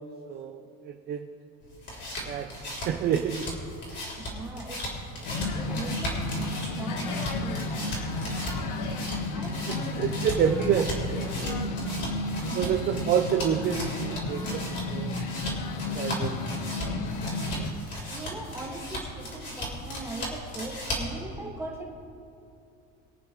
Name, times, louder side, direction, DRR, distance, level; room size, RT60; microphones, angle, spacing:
voice 1, 0.3-1.3 2.2-3.5 9.9-11.7 12.4-14.6 14.9-15.2 15.9-16.4, right 8 dB, 30° right, 5 dB, 0.4 m, -28 dB
sound 1, 1.6-21.2, equal, 30° left, 3.5 m, -37 dB
voice 2, 4.2-4.8 5.3-6.3 6.6-8.0 9.3-9.9 12.5-12.8 18.1-21.9, right 2 dB, 5° right, -3 dB, 1.8 m, -40 dB
sound 2, 5.2-17.7, left 2 dB, 60° left, 1.3 m, -32 dB
24.0 x 8.9 x 3.1 m, 2.6 s
cardioid pair, 175°, 36 cm